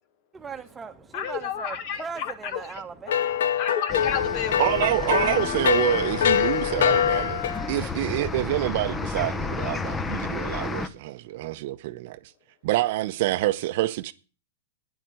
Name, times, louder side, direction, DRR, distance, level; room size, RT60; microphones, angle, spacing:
voice 1, 0.3-3.5, right 5 dB, 15° right, 1.2 m, -39 dB
voice 2, 1.1-2.8 3.6-4.7, left 9 dB, 50° left, 1.9 m, -30 dB
sound 1, 3.1-7.8, left 8 dB, 75° left, 1.0 m, -24 dB
sound 2, 3.9-10.9, left 4 dB, 15° left, 0.9 m, -32 dB
voice 3, 4.6-7.4 7.7-12.2 12.6-14.1, right 16 dB, 55° right, 0.8 m, -27 dB
9.9 x 8.0 x 9.1 m
hypercardioid pair, 140°, 0 cm